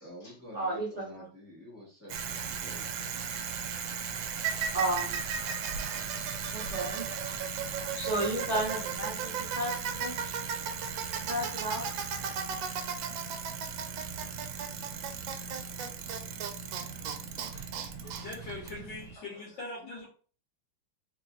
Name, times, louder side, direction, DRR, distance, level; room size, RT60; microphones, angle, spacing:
voice 1, 0.0-2.9, equal, 10° right, 1.1 m, -49 dB
voice 2, 0.5-1.3 4.7-5.2 5.4-5.5 6.4-7.4 8.0-10.2 11.3-11.9 17.5-17.6, right 1 dB, 40° right, 0.5 m, -33 dB
Bicycle, 2.1-19.2, right 6 dB, 75° right, 1.2 m, -35 dB
voice 3, 18.2-20.1, left 2 dB, 65° left, 1.7 m, -41 dB
4.0 x 3.1 x 2.4 m
omnidirectional pair, 2.3 m